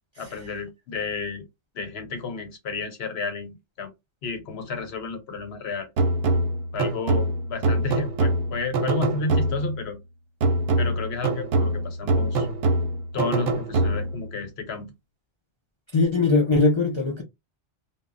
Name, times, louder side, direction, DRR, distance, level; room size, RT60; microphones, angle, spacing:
voice 1, 0.2-1.4 1.7-3.9 4.2-5.9 6.7-10.0 10.8-12.5 13.1-14.9, left 4 dB, 65° left, 1.0 m, -32 dB
sound 1, 6.0-9.8 10.4-14.3, right 2 dB, 65° right, 0.7 m, -24 dB
voice 2, 15.9-17.2, left 3 dB, 50° left, 0.3 m, -20 dB
2.1 x 2.0 x 3.6 m
omnidirectional pair, 1.2 m